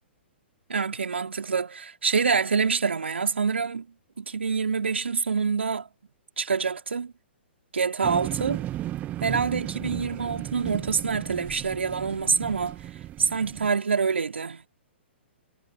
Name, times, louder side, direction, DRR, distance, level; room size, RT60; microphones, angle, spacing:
voice 1, 0.7-3.9 4.2-5.9 6.4-7.1 7.7-8.6 9.2-12.8 13.2-14.7, right 5 dB, 75° right, 4.5 m, -26 dB
sound 1, 8.0-13.7, right 13 dB, 25° right, 1.6 m, -35 dB
figure-of-eight pair, 120°, 6 cm